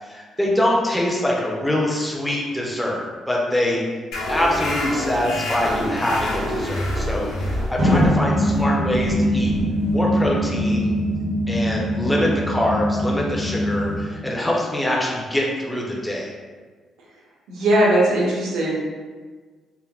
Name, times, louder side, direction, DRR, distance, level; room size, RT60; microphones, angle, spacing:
voice 1, 0.0-3.8 4.3-9.5 9.9-10.9 11.5-16.3, left 1 dB, 5° left, -3 dB, 0.5 m, -24 dB
sound 1, 4.1-11.2, equal, 85° left, 0.6 m, -28 dB
sound 2, 7.8-14.0, equal, 40° right, 0.5 m, -22 dB
voice 2, 17.5-18.7, right 1 dB, 85° right, -5 dB, 0.7 m, -19 dB
3.2 x 2.1 x 2.3 m, 1.4 s
cardioid pair, 90°, 0 cm